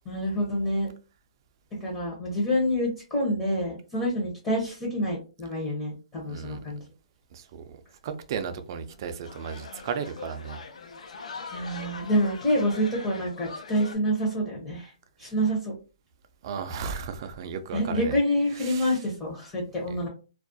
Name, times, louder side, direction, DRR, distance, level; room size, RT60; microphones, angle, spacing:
voice 1, 0.1-0.9 1.8-6.8 11.5-14.9 15.2-15.7 17.7-20.1, equal, 15° left, 0.6 m, -27 dB
voice 2, 6.3-6.6 7.3-7.8 8.0-10.6 16.4-18.2 18.6-18.9, right 6 dB, 40° right, 0.3 m, -35 dB
sound 1, 8.7-13.9, left 4 dB, 85° left, 0.4 m, -42 dB
2.3 x 2.1 x 2.5 m
hypercardioid pair, 160°, 4 cm